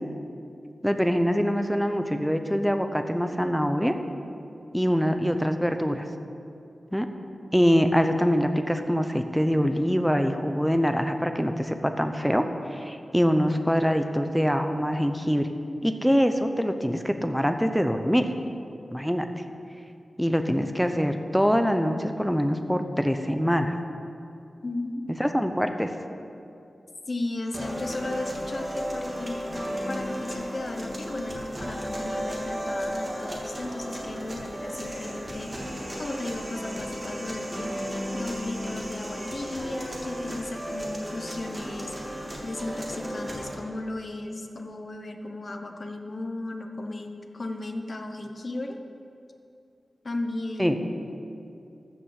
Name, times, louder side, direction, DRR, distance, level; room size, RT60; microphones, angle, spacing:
voice 1, 0.8-3.9 4.7-6.1 6.9-7.1 7.5-15.5 15.8-18.3 18.9-19.3 20.2-23.8 25.2-25.9 50.6-50.8, equal, ahead, 7 dB, 0.7 m, -24 dB
voice 2, 24.6-25.0 27.1-35.5 36.0-37.9 38.1-41.9 42.4-48.8 50.0-50.9, left 2 dB, 45° left, 5 dB, 0.9 m, -35 dB
sound 1, 27.5-43.5, equal, 20° right, 2.1 m, -34 dB
14.0 x 6.2 x 6.4 m, 2.6 s
wide cardioid pair, 115°, 0 cm